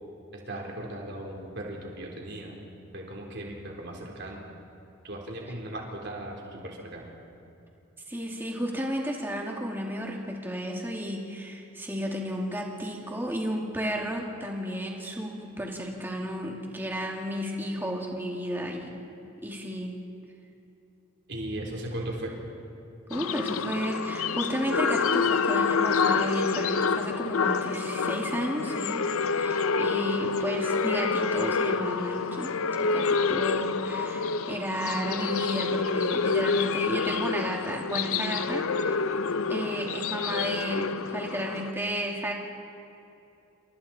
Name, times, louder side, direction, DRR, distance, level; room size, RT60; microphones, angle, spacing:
voice 1, 0.5-2.6 2.9-4.4 5.0-7.1 21.3-22.3, right 1 dB, 50° right, 0 dB, 4.0 m, -37 dB
voice 2, 8.1-19.0 19.4-20.0 23.1-32.5 32.8-39.0 39.5-42.3, equal, 10° right, -1 dB, 2.6 m, -33 dB
sound 1, 23.1-41.7, left 5 dB, 75° left, 0.7 m, -27 dB
29.0 x 27.0 x 4.4 m, 2.8 s
head